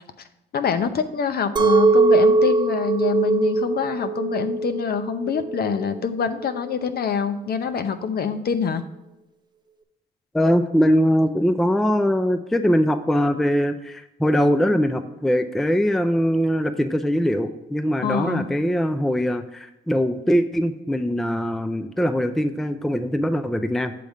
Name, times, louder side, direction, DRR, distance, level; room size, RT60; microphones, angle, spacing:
voice 1, 0.5-8.8 18.0-18.5, left 6 dB, 50° left, 9 dB, 0.7 m, -25 dB
Chink clink, 1.6-6.7, right 3 dB, 20° right, 0.7 m, -21 dB
voice 2, 10.3-23.9, equal, ahead, 10 dB, 0.4 m, -22 dB
7.6 x 3.5 x 6.5 m, 0.91 s
cardioid pair, 90°, 20 cm